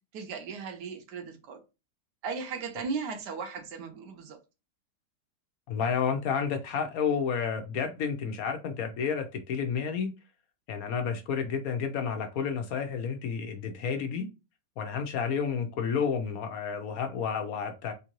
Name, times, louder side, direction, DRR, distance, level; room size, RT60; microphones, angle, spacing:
voice 1, 0.1-1.6 2.2-4.4, right 5 dB, 90° right, 1.4 m, -36 dB
voice 2, 5.7-10.1 10.7-14.3 14.8-17.9, left 6 dB, 65° left, 1.1 m, -30 dB
3.7 x 2.6 x 2.9 m
omnidirectional pair, 1.8 m